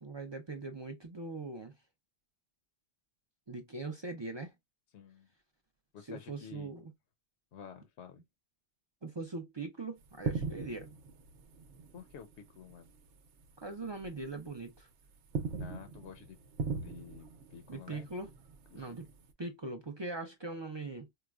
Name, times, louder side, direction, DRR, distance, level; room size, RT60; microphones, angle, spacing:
voice 1, 0.0-1.7 3.5-4.5 6.1-6.9 9.0-10.9 13.6-14.9 17.7-18.3 18.7-19.1 19.4-21.1, right 3 dB, 40° right, 0.3 m, -41 dB
voice 2, 4.9-5.3 5.9-6.7 7.5-8.2 11.9-12.9 15.5-16.4 16.8-18.1 18.7-19.1, left 7 dB, 75° left, 0.9 m, -51 dB
sound 1, 10.0-13.0 13.3-13.5 14.0-14.8 15.1-19.3, right 4 dB, 85° right, 1.0 m, -40 dB
4.6 x 2.1 x 2.3 m
omnidirectional pair, 1.2 m